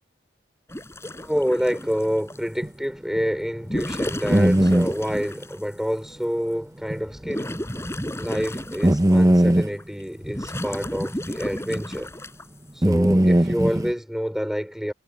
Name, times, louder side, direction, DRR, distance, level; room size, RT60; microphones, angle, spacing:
sound 1, 0.7-2.5 3.5-5.6 6.2-6.3 6.8-9.3 9.8-12.5 13.6-13.9, equal, 15° left, 6.7 m, -32 dB
voice 1, 1.2-7.6 8.1-12.1 12.7-14.9, equal, ahead, 3.4 m, -27 dB
sound 2, 2.6-2.7 3.2-3.3 4.3-4.9 6.9-7.0 7.3-7.4 8.8-9.7 11.8-11.9 12.8-13.9, right 1 dB, 15° right, 0.9 m, -18 dB
head